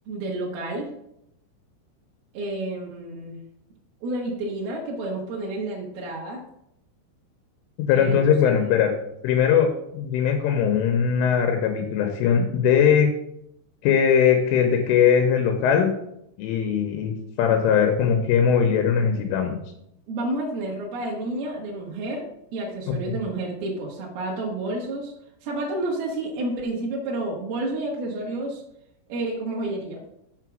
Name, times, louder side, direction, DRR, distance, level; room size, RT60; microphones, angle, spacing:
voice 1, 0.1-0.9 2.3-3.4 4.0-6.4 7.9-8.5 20.1-22.3 22.5-25.1 25.4-28.6 29.1-30.0, right 2 dB, 65° right, -3 dB, 2.8 m, -30 dB
voice 2, 7.9-8.9 9.2-13.1 13.8-15.9 16.4-19.6 22.9-23.1, left 7 dB, 80° left, 4 dB, 3.3 m, -20 dB
6.5 x 6.0 x 6.1 m, 0.77 s
omnidirectional pair, 5.8 m